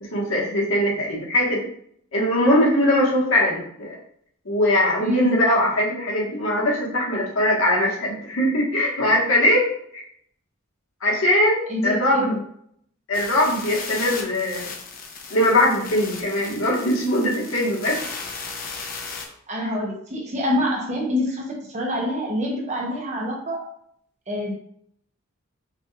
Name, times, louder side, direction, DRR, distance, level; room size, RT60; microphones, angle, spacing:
voice 1, 0.1-1.6 2.1-4.0 4.5-9.7 9.9-10.0 11.0-12.3 13.1-14.7 15.3-18.0, left 1 dB, 80° left, -4 dB, 1.7 m, -21 dB
voice 2, 5.0-5.4 11.7-12.4 19.5-23.6 24.3-24.5, left 1 dB, 35° right, -1 dB, 1.0 m, -26 dB
sound 1, 13.1-19.3, left 4 dB, 45° left, 0.7 m, -36 dB
5.6 x 3.4 x 2.5 m, 0.66 s
head